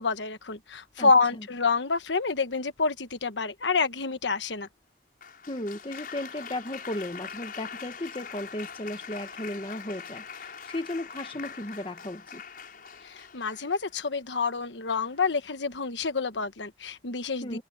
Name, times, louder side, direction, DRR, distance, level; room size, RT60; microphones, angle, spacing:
voice 1, 0.0-4.7 13.0-17.6, left 4 dB, 85° left, 1.3 m, -28 dB
voice 2, 1.0-1.4 5.5-12.4 17.4-17.6, left 1 dB, 30° left, 1.4 m, -35 dB
Applause, 5.2-14.1 14.9-15.3, left 6 dB, 55° left, 6.6 m, -43 dB
open air
head